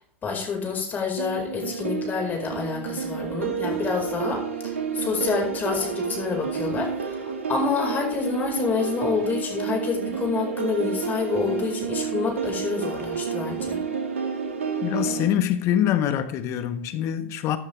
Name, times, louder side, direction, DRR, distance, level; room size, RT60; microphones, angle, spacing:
voice 1, 0.2-13.8, left 5 dB, 25° left, 5.0 m, -28 dB
sound 1, 1.2-15.3, right 6 dB, 80° right, 1.9 m, -30 dB
voice 2, 14.8-17.6, left 10 dB, 45° left, 1.4 m, -24 dB
15.0 x 10.5 x 3.4 m
hypercardioid pair, 95°, 7 cm